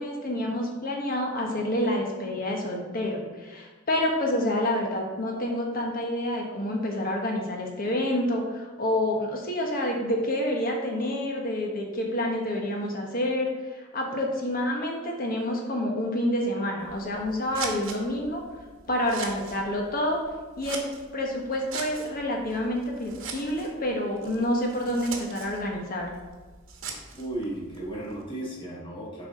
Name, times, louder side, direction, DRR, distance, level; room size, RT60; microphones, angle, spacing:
voice 1, 0.0-18.4 18.9-20.2 20.6-20.8 21.1-26.1, left 1 dB, 45° left, 1 dB, 1.2 m, -28 dB
Scissors, 16.8-28.2, right 5 dB, 80° right, 1.0 m, -42 dB
voice 2, 27.1-29.3, right 1 dB, 25° left, -5 dB, 1.5 m, -35 dB
7.5 x 4.8 x 3.7 m, 1.3 s
head